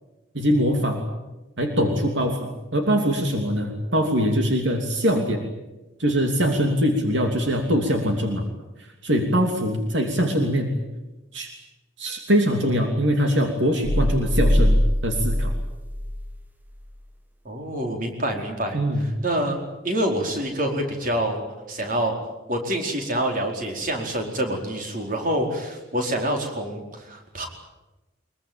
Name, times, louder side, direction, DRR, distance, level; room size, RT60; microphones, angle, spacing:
voice 1, 0.3-1.1 1.6-5.4 6.0-8.4 8.8-10.7 11.3-11.5 12.0-15.5 18.7-19.1, equal, 70° right, 3 dB, 3.0 m, -22 dB
sound 1, 13.8-16.5, equal, 10° right, 1.5 m, -22 dB
voice 2, 17.4-18.8 19.2-19.6 19.8-21.4 21.7-22.2 22.5-27.5, right 1 dB, 40° right, 2 dB, 4.7 m, -26 dB
24.0 x 22.5 x 9.0 m, 1.0 s
head